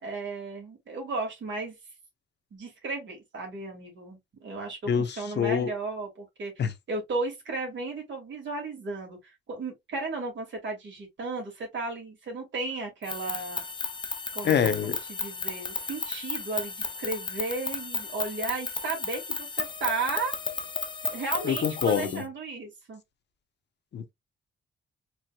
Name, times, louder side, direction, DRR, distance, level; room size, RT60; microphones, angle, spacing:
voice 1, 0.0-1.7 2.5-6.5 6.9-13.6 14.3-14.7 15.1-20.4 21.1-23.0, right 3 dB, 65° right, 2.5 m, -34 dB
voice 2, 4.9-5.7 6.6-6.7 14.4-15.0 21.4-22.2 23.9-24.1, left 7 dB, 55° left, 0.9 m, -26 dB
sound 1, 13.0-22.2, left 4 dB, 20° left, 0.7 m, -34 dB
4.6 x 3.8 x 2.3 m
wide cardioid pair, 160°, 21 cm